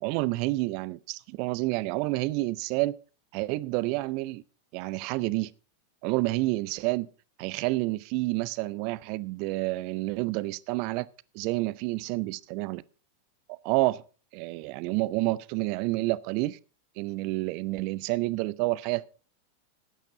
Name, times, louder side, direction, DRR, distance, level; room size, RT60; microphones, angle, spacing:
voice 1, 0.0-3.0 3.3-4.4 4.7-5.5 6.0-7.1 7.4-11.1 11.3-12.8 13.5-14.0 14.3-16.6 17.0-19.1, right 20 dB, 45° right, 0.6 m, -29 dB
12.5 x 9.2 x 5.0 m
figure-of-eight pair, 90°, 0 cm